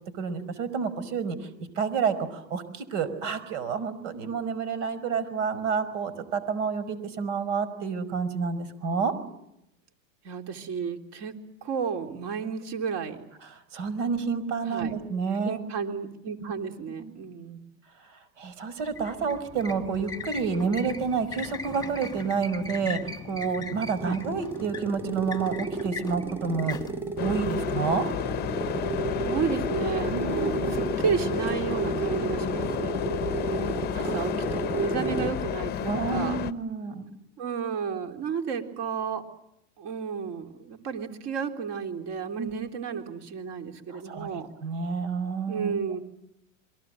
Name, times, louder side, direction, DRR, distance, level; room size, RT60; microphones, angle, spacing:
voice 1, 0.2-1.5 1.8-9.1 13.4-15.6 17.0-17.1 18.4-23.0 23.2-26.8 27.2-28.1 30.1-30.8 33.9-34.3 35.8-37.0 42.4-42.5 43.9-45.7, right 5 dB, 70° right, 14 dB, 5.2 m, -29 dB
voice 2, 10.2-11.3 11.6-13.2 14.7-14.9 15.4-17.6 24.0-24.2 29.2-33.0 33.9-36.4 37.4-39.2 39.8-44.5 45.5-46.0, right 6 dB, 40° right, 5 dB, 3.7 m, -32 dB
sound 1, 18.8-28.1, left 4 dB, 10° left, 1.5 m, -40 dB
sound 2, 23.7-35.5, right 3 dB, 5° right, 2.4 m, -32 dB
sound 3, 27.2-36.5, left 11 dB, 25° left, 0.9 m, -32 dB
28.5 x 23.0 x 7.7 m, 0.83 s
supercardioid pair, 145°, 39 cm